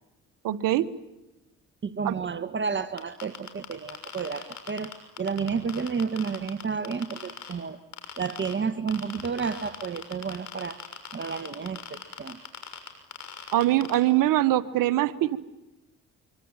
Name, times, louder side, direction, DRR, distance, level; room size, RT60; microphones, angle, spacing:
voice 1, 0.4-0.9 2.0-2.1 13.5-15.4, right 14 dB, 75° right, 12 dB, 1.5 m, -23 dB
voice 2, 1.8-4.9 5.2-7.8 8.2-10.8 11.1-11.8 12.2-12.4, right 5 dB, 35° right, 11 dB, 1.6 m, -31 dB
sound 1, 3.0-7.5 7.9-8.5 8.9-13.9, left 8 dB, 55° left, 6.6 m, -39 dB
25.5 x 25.0 x 9.1 m, 0.97 s
supercardioid pair, 75°, 33 cm